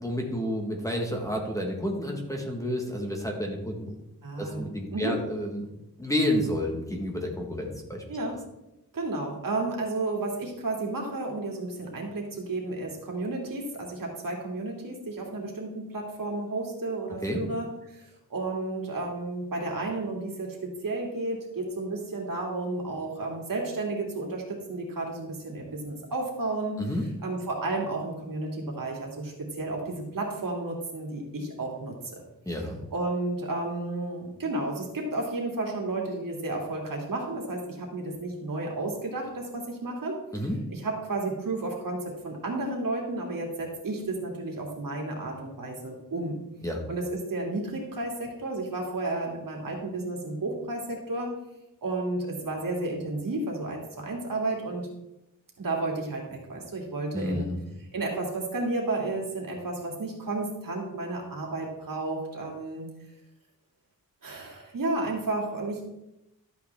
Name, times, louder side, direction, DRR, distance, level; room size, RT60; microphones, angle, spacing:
voice 1, 0.0-4.0 4.4-5.7 6.0-8.0 17.2-17.4 26.8-27.0 32.5-32.8 40.3-40.6 46.6-46.9 57.1-57.7, left 1 dB, 10° left, 1 dB, 1.4 m, -30 dB
voice 2, 4.2-5.2 8.1-8.4 8.9-18.0 18.3-26.8 27.2-32.2 32.9-40.2 40.7-46.4 46.9-51.3 51.8-54.9 55.6-57.5 57.9-62.9 64.2-65.9, right 2 dB, 65° right, -1 dB, 2.6 m, -32 dB
12.5 x 8.5 x 3.5 m, 0.91 s
wide cardioid pair, 165°, 36 cm